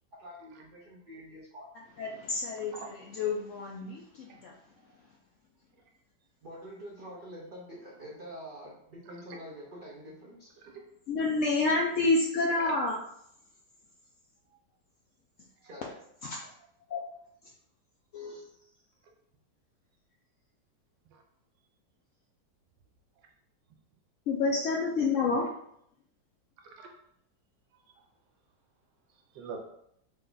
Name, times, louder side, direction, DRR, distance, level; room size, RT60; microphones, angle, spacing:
voice 1, 0.2-1.7 6.4-10.5 15.6-15.9, equal, 60° right, -5 dB, 0.5 m, -46 dB
voice 2, 2.0-2.7 3.2-4.5 11.1-13.0 16.2-16.4 16.9-17.0 18.1-18.4 24.3-25.5, left 3 dB, 75° left, -2 dB, 0.7 m, -28 dB
voice 3, 2.6-2.9 4.2-4.4 10.6-10.8 12.5-12.7 14.5-14.6 15.6-15.7 21.1-21.2 26.7-26.9 27.7-28.0 29.1-29.6, right 5 dB, 85° right, 2 dB, 1.4 m, -45 dB
3.9 x 2.2 x 3.8 m, 0.72 s
omnidirectional pair, 1.9 m